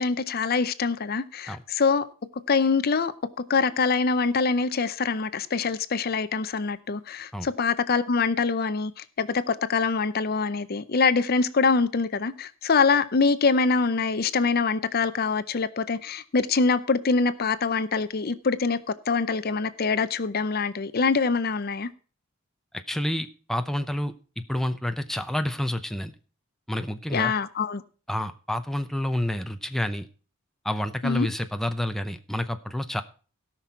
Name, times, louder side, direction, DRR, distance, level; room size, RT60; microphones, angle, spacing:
voice 1, 0.0-2.0 2.5-3.1 3.5-18.8 19.1-21.9 27.1-27.8 31.0-31.3, left 4 dB, 45° left, 0.6 m, -24 dB
voice 2, 22.7-24.1 24.5-26.1 26.7-27.3 28.1-30.1 30.6-33.0, left 1 dB, ahead, 0.7 m, -29 dB
17.0 x 6.0 x 4.5 m
head